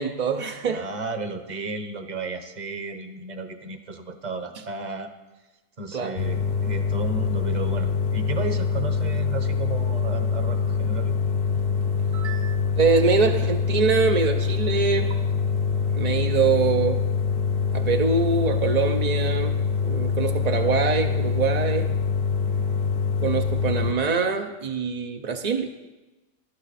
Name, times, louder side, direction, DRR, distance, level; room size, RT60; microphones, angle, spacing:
voice 1, 0.0-0.8 5.9-6.2 12.1-12.5 12.8-15.1 16.0-17.0 17.7-19.6 19.8-21.9 23.2-25.7, right 5 dB, 50° right, 4 dB, 0.4 m, -24 dB
voice 2, 0.6-5.1 5.8-11.1, right 3 dB, 35° right, 8 dB, 0.9 m, -33 dB
sound 1, 6.2-23.9, left 5 dB, 55° left, 0.9 m, -24 dB
18.5 x 12.0 x 4.1 m, 1.1 s
omnidirectional pair, 1.5 m